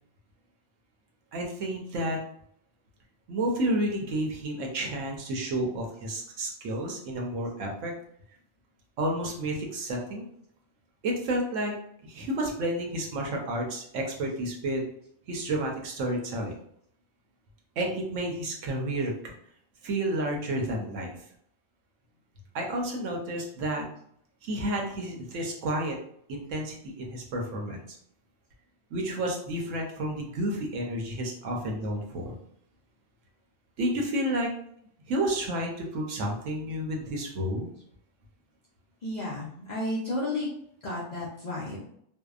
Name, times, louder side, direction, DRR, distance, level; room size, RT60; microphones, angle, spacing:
voice 1, 1.3-2.2 3.3-7.9 9.0-10.3 11.0-11.7 12.0-14.8 15.3-16.5 17.8-19.3 19.8-21.1 22.5-23.9 24.4-26.0 26.3-28.0 28.9-32.4 33.8-34.5 35.0-37.7, right 1 dB, 85° right, 0 dB, 1.0 m, -31 dB
voice 2, 39.0-40.5 40.8-41.9, left 1 dB, 55° left, -6 dB, 0.4 m, -32 dB
2.6 x 2.0 x 2.3 m, 0.69 s
omnidirectional pair, 1.3 m